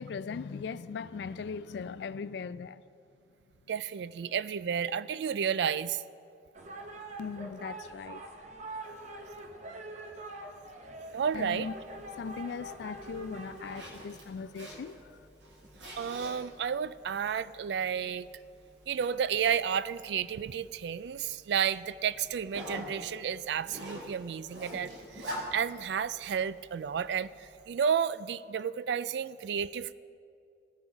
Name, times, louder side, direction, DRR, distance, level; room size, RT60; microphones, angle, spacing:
voice 1, 0.0-2.8 7.2-8.3 11.3-11.7 12.1-15.2, left 5 dB, 65° left, 0.3 m, -39 dB
voice 2, 3.7-6.0 11.1-11.7 16.0-18.3 18.9-29.9, right 7 dB, 65° right, 0.3 m, -32 dB
sound 1, 6.5-14.0, right 1 dB, 40° right, 0.9 m, -44 dB
Zipper (clothing), 11.2-27.6, equal, 90° right, 2.6 m, -47 dB
17.0 x 6.0 x 5.1 m
head